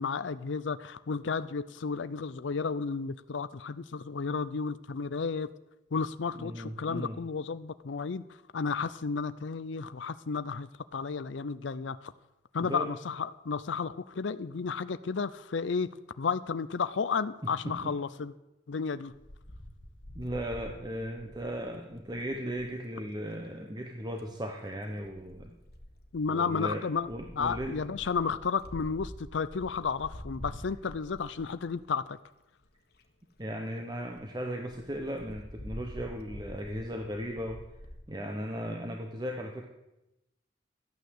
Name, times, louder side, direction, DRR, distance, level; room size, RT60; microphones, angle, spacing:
voice 1, 0.0-5.5 5.9-8.2 8.5-12.1 12.5-15.9 16.2-18.3 18.7-19.1 26.1-27.1 27.3-32.2, left 5 dB, 80° left, 14 dB, 0.5 m, -32 dB
voice 2, 6.3-7.2 12.6-12.9 17.4-17.9 20.1-25.6 26.3-27.9 33.4-37.6 38.1-39.7, equal, 20° right, 2 dB, 1.1 m, -37 dB
Wind, 19.1-22.8 23.9-24.3 25.0-32.0 32.6-32.7 32.9-33.0 33.4-33.5 33.8-33.9 34.1-34.2 34.7-38.0, equal, 55° left, 1.4 m, -47 dB
13.5 x 9.4 x 7.9 m, 0.96 s
head